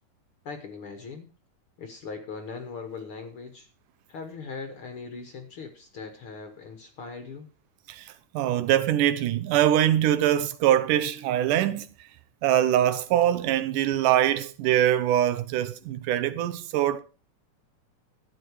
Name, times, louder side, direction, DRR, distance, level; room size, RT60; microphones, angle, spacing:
voice 1, 0.4-1.3 1.8-3.7 4.1-7.5, left 4 dB, 55° left, 1.6 m, -40 dB
voice 2, 7.9-11.9 12.4-17.0, right 11 dB, 80° right, 2.3 m, -23 dB
13.0 x 9.1 x 4.7 m
omnidirectional pair, 3.8 m